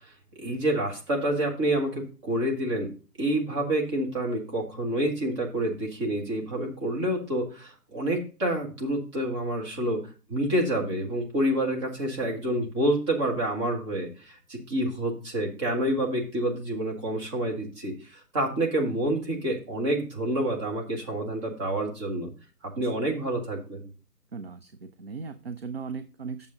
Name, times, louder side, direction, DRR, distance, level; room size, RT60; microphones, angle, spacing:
voice 1, 0.4-2.9 3.2-10.0 10.3-22.3 22.6-23.9, right 1 dB, 20° right, -1 dB, 1.6 m, -28 dB
voice 2, 24.3-26.5, right 5 dB, 40° right, 9 dB, 0.6 m, -37 dB
8.4 x 7.0 x 3.8 m, 0.35 s
figure-of-eight pair, 150°, 48 cm